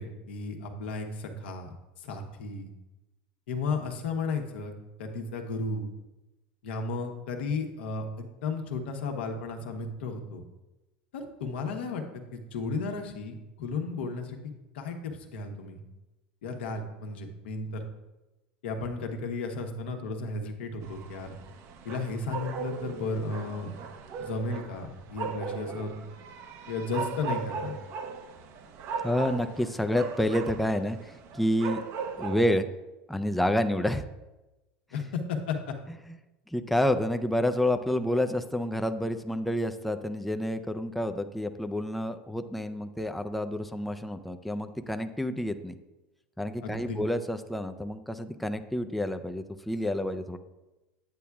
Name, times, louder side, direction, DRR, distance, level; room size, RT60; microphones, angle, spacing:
voice 1, 0.0-1.7 2.0-2.7 3.5-4.7 5.0-5.9 6.6-10.4 11.1-14.4 14.7-15.8 16.4-17.8 18.6-21.3 21.8-23.8 24.2-25.9 26.7-27.8 34.9-35.7 46.6-47.0, left 3 dB, 85° left, 4 dB, 1.1 m, -34 dB
sound 1, 20.8-32.5, right 5 dB, 55° right, 0.7 m, -38 dB
voice 2, 29.0-31.9 32.2-32.7 33.1-34.0 36.1-36.2 36.5-45.8 46.4-50.4, left 1 dB, ahead, 7 dB, 0.4 m, -29 dB
8.5 x 8.2 x 2.3 m, 1.0 s
supercardioid pair, 105°, 6 cm